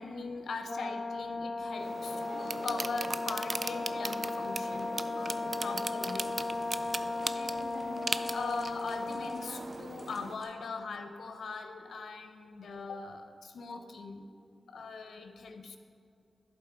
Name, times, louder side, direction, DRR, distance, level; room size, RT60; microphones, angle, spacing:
voice 1, 0.0-6.3 7.3-14.2 14.7-15.8, left 4 dB, 80° left, 6 dB, 0.6 m, -41 dB
Brass instrument, 0.7-9.6, left 3 dB, 35° left, 0.6 m, -36 dB
sound 1, 1.8-10.4, right 3 dB, 40° right, 0.3 m, -39 dB
Crackle, 6.0-10.4, equal, 15° right, 1.3 m, -58 dB
11.5 x 3.9 x 4.6 m, 2.6 s
cardioid pair, 75°, 0 cm